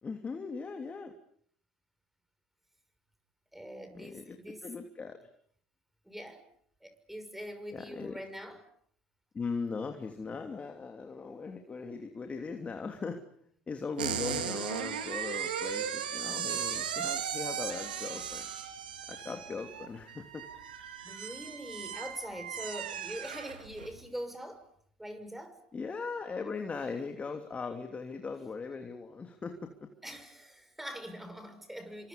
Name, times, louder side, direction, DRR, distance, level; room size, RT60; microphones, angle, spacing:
voice 1, 0.0-1.1 3.9-5.2 7.7-8.2 9.3-13.2 13.7-18.5 19.1-20.4 25.7-29.9, left 4 dB, 30° left, 5 dB, 3.0 m, -39 dB
voice 2, 3.5-4.6 6.1-6.4 6.8-8.6 21.0-24.6 25.0-25.5 30.0-32.1, equal, 5° right, 9 dB, 6.2 m, -43 dB
sound 1, 14.0-23.9, right 8 dB, 90° right, 3.1 m, -37 dB
29.5 x 26.5 x 5.4 m, 0.63 s
hypercardioid pair, 75°, 5 cm